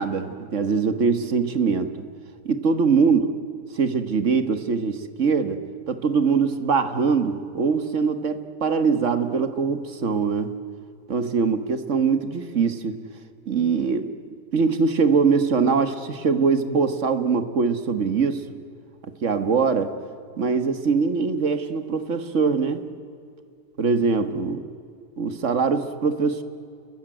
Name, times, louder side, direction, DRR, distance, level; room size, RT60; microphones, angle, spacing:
voice 1, 0.0-2.1 2.4-3.2 3.7-10.6 11.1-13.0 13.5-14.1 14.5-18.4 19.0-20.0 20.4-22.9 23.8-24.7 25.2-26.4, right 5 dB, 50° right, 10 dB, 1.7 m, -22 dB
30.0 x 21.5 x 9.1 m, 2.4 s
omnidirectional pair, 1.7 m